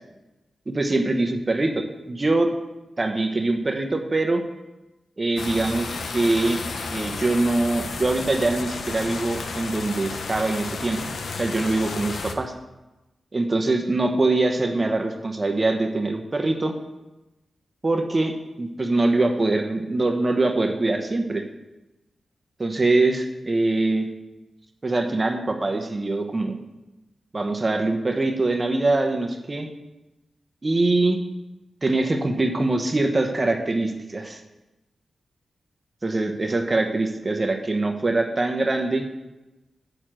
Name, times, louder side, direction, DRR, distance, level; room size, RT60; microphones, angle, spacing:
voice 1, 0.7-2.5 3.0-4.4 5.2-6.6 6.9-11.0 11.3-12.5 13.3-16.8 17.8-21.4 22.6-24.1 24.8-26.5 27.3-29.7 30.6-31.2 31.8-34.4 36.0-39.1, right 2 dB, 35° right, 5 dB, 1.1 m, -23 dB
sound 1, 5.4-12.3, left 4 dB, 75° left, 0.9 m, -32 dB
7.9 x 6.6 x 7.6 m, 1.0 s
cardioid pair, 55°, 0 cm